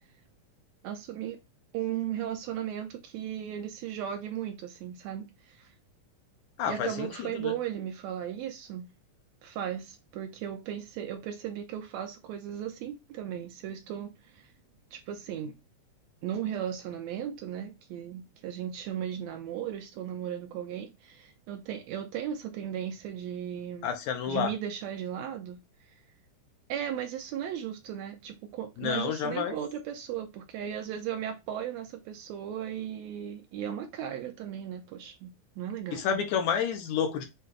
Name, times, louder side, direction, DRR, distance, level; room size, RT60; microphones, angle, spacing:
voice 1, 0.8-1.4 1.7-5.7 6.7-8.9 9.4-14.5 14.9-15.5 16.2-23.9 24.3-25.6 25.8-25.9 26.7-36.2, right 10 dB, 85° right, 1.5 m, -36 dB
voice 2, 6.6-7.1 7.4-7.5 23.8-24.5 28.8-29.5 35.9-37.3, left 7 dB, 75° left, 2.1 m, -29 dB
6.7 x 2.3 x 3.1 m
omnidirectional pair, 3.7 m